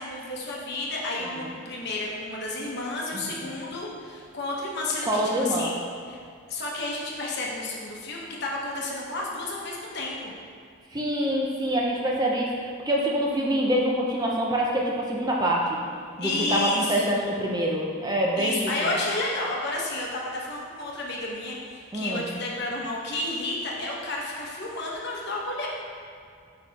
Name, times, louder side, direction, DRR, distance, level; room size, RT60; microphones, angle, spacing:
voice 1, 0.0-5.7 6.1-6.2 6.5-10.3 16.2-17.2 18.4-25.7, left 2 dB, 50° left, -3 dB, 0.9 m, -31 dB
voice 2, 3.1-3.6 5.0-5.7 10.9-15.8 16.2-18.7 21.9-22.2, right 1 dB, 20° right, -2 dB, 0.5 m, -26 dB
5.1 x 4.7 x 4.0 m, 2.3 s
head